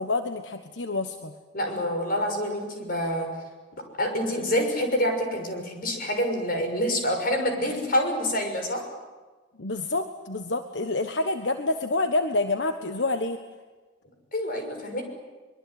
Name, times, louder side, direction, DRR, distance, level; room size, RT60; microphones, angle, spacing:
voice 1, 0.0-1.3 9.6-13.4, left 2 dB, 80° left, 8 dB, 1.3 m, -27 dB
voice 2, 1.5-3.3 3.8-8.8 14.3-15.0, equal, 55° left, 4 dB, 6.3 m, -27 dB
24.0 x 23.0 x 9.4 m, 1.3 s
head